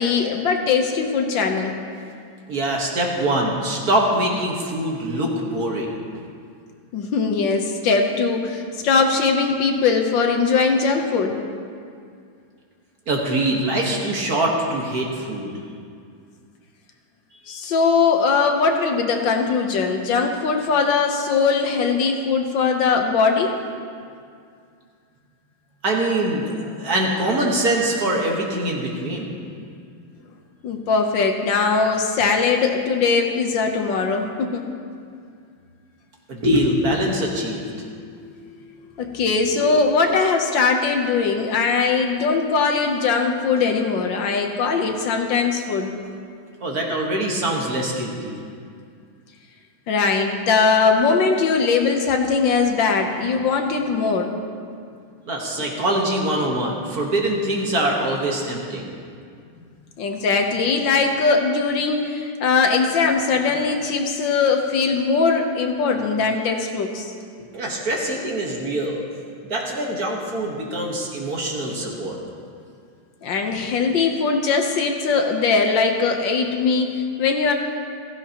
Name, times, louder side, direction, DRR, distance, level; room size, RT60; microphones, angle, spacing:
voice 1, 0.0-1.8 6.9-11.4 17.5-23.6 30.6-34.6 39.0-45.9 49.9-54.3 60.0-67.1 73.2-77.5, left 4 dB, 70° left, 4 dB, 1.5 m, -20 dB
voice 2, 2.5-5.9 13.1-15.5 17.5-17.6 25.8-29.4 36.3-38.9 46.6-48.4 55.3-58.8 67.4-69.0 69.5-72.2, right 1 dB, 50° right, -1 dB, 1.7 m, -24 dB
16.0 x 14.5 x 2.9 m, 2.3 s
omnidirectional pair, 2.2 m